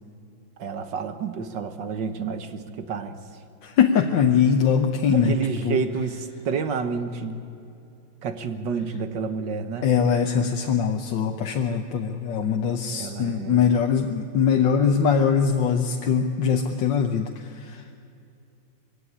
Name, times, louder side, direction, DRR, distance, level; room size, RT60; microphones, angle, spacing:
voice 1, 0.6-3.1 5.1-7.4 8.2-9.9 12.9-13.6, right 5 dB, 70° right, 9 dB, 2.0 m, -29 dB
voice 2, 3.6-5.4 5.6-5.8 9.8-17.8, left 7 dB, 75° left, 4 dB, 1.7 m, -22 dB
22.5 x 16.5 x 9.9 m, 2.7 s
omnidirectional pair, 2.0 m